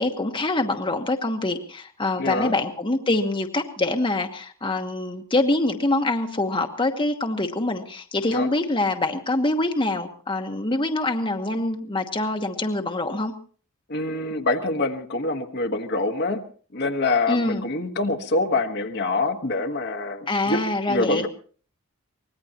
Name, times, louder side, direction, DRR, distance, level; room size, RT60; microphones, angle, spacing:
voice 1, 0.0-13.3 17.3-17.7 20.3-21.2, left 2 dB, 25° left, 5 dB, 1.2 m, -25 dB
voice 2, 2.2-2.5 8.3-8.5 13.9-16.4 16.7-20.6 20.9-21.3, left 2 dB, 50° left, 5 dB, 1.3 m, -25 dB
24.5 x 19.0 x 2.9 m, 0.42 s
head